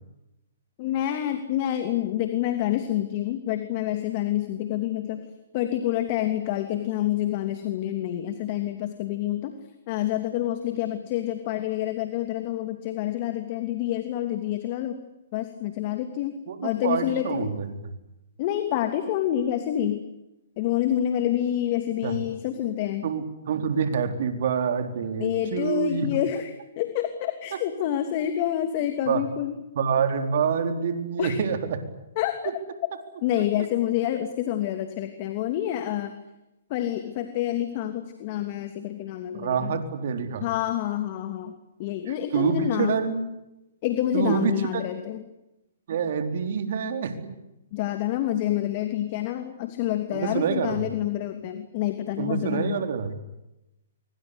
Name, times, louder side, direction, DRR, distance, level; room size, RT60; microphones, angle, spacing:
voice 1, 0.8-5.3 5.5-9.5 9.9-15.0 15.3-16.4 16.6-17.5 18.4-20.0 20.6-23.1 25.2-29.5 31.2-31.4 32.2-32.3 33.2-36.2 36.7-39.8 40.4-42.9 43.8-45.2 47.7-52.9, left 12 dB, 40° left, 8 dB, 2.9 m, -28 dB
voice 2, 16.5-17.7 22.0-22.2 23.0-26.1 29.1-29.2 29.8-31.8 39.3-40.5 42.1-43.3 44.1-44.8 45.9-47.3 50.1-50.8 52.2-53.2, right 6 dB, 60° right, 7 dB, 4.2 m, -27 dB
25.0 x 24.0 x 8.3 m, 0.93 s
hypercardioid pair, 135°, 0 cm